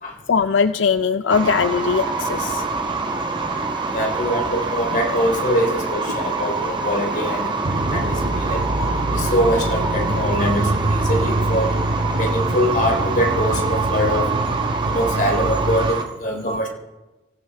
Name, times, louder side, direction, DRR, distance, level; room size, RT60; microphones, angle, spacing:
voice 1, 0.3-2.6 16.4-16.5, left 6 dB, 80° left, 12 dB, 0.4 m, -20 dB
sound 1, 1.3-16.0, right 3 dB, 25° right, 1.3 m, -25 dB
voice 2, 3.9-7.5 7.9-8.6 9.1-11.7 12.1-14.3 14.8-16.7, equal, 45° left, 2 dB, 3.3 m, -23 dB
sound 2, 7.6-15.9, right 1 dB, 45° right, 0.9 m, -24 dB
25.0 x 15.0 x 3.5 m, 1.1 s
head